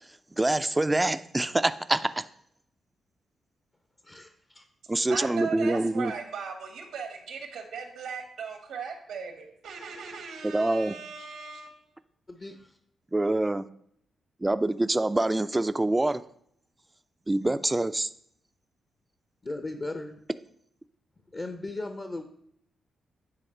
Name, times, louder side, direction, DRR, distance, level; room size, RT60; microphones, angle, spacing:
voice 1, 0.4-2.2 4.9-6.1 10.4-10.9 13.1-13.7 14.4-16.2 17.3-18.1, right 2 dB, 20° right, 12 dB, 0.4 m, -25 dB
voice 2, 4.0-4.7 12.3-12.8 19.4-20.2 21.3-22.2, left 2 dB, 35° left, 6 dB, 0.8 m, -37 dB
voice 3, 5.1-11.8, right 6 dB, 85° right, 4 dB, 1.3 m, -38 dB
9.8 x 3.5 x 4.4 m, 0.67 s
supercardioid pair, 50°, 0 cm